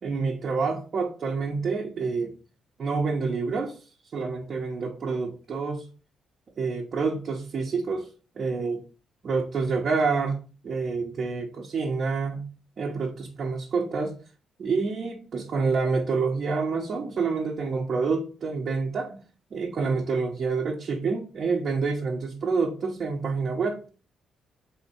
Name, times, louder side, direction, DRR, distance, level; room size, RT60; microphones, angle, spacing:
voice 1, 0.0-2.3 2.8-3.8 4.1-5.9 6.6-8.1 8.4-8.8 9.2-10.4 10.6-12.5 12.8-14.1 14.6-19.2 19.5-23.8, right 4 dB, 50° right, -2 dB, 0.8 m, -27 dB
3.6 x 3.5 x 4.2 m, 0.36 s
cardioid pair, 90°, 0 cm